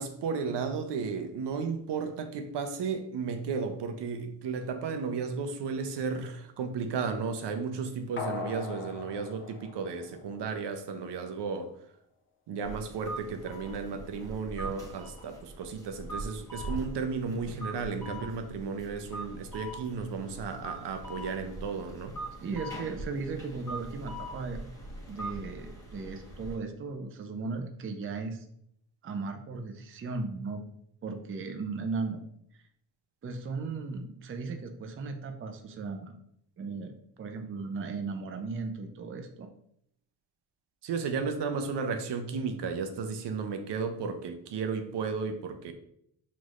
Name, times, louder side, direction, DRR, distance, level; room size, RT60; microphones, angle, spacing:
voice 1, 0.0-11.7 12.5-22.1 40.8-45.7, right 5 dB, 65° right, 7 dB, 0.7 m, -34 dB
sound 1, 8.2-10.7 11.1-11.2, left 5 dB, 25° left, 0.7 m, -40 dB
sound 2, 12.6-26.6, right 1 dB, 5° left, 1.3 m, -42 dB
voice 2, 22.4-24.6 25.1-28.4 29.0-30.6 31.0-32.2 33.2-36.2 36.6-39.5, right 4 dB, 30° right, 5 dB, 0.5 m, -36 dB
5.9 x 3.1 x 2.5 m, 0.71 s
cardioid pair, 105°, 45 cm